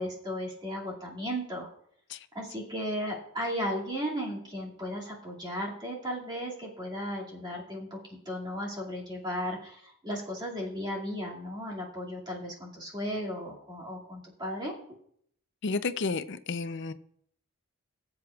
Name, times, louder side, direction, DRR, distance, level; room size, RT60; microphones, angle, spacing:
voice 1, 0.0-1.7 2.3-8.0 8.3-14.7, equal, 20° right, 2.3 m, -35 dB
voice 2, 15.6-16.9, left 4 dB, 55° left, 0.5 m, -31 dB
19.5 x 7.7 x 2.4 m
head